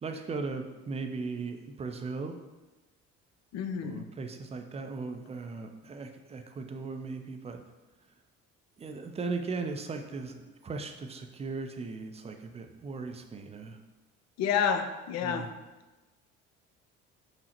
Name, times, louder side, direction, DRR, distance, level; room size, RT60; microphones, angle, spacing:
voice 1, 0.0-2.3 3.8-7.6 8.8-13.8 15.2-15.5, right 4 dB, 20° right, 5 dB, 0.4 m, -37 dB
voice 2, 3.5-4.1 14.4-15.5, left 7 dB, 50° left, 8 dB, 0.5 m, -29 dB
5.5 x 2.0 x 2.9 m, 1.1 s
hypercardioid pair, 60°, 35 cm